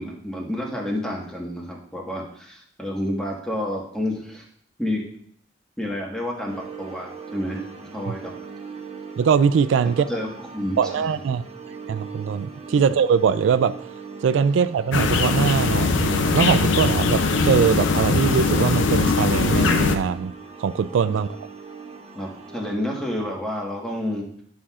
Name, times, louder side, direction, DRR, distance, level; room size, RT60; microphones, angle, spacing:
voice 1, 0.0-4.4 4.8-5.0 5.8-7.7 7.9-8.3 10.1-10.3 10.5-11.1 12.8-12.9 21.1-21.2 22.1-24.2, left 1 dB, 5° left, -2 dB, 1.4 m, -29 dB
sound 1, 6.5-22.8, right 5 dB, 35° right, 0.8 m, -40 dB
voice 2, 9.2-10.0 10.8-11.4 11.9-13.7 14.2-20.3 20.6-21.3, right 6 dB, 90° right, 13 dB, 0.3 m, -21 dB
sound 2, 14.9-20.0, left 4 dB, 85° left, 0.6 m, -21 dB
11.0 x 5.8 x 2.4 m, 0.64 s
head